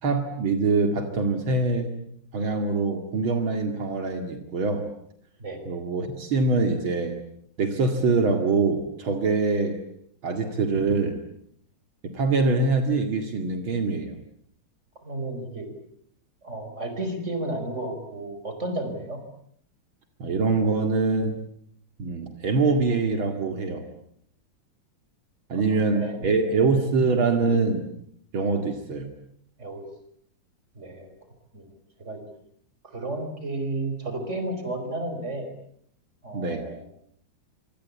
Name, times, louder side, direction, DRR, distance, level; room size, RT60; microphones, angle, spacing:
voice 1, 0.0-1.9 2.3-4.8 5.7-7.2 7.6-9.8 10.2-11.2 12.0-14.2 20.2-21.4 22.0-23.9 25.5-27.9 28.3-29.1 36.3-36.6, right 3 dB, 75° right, 6 dB, 3.0 m, -24 dB
voice 2, 15.0-15.7 16.4-19.2 25.7-27.0 28.5-28.7 29.6-29.9 30.7-31.1 31.5-31.7 32.0-32.2 32.8-35.5 36.2-36.9, right 2 dB, 35° right, 7 dB, 5.4 m, -33 dB
26.0 x 26.0 x 8.5 m, 0.69 s
omnidirectional pair, 2.2 m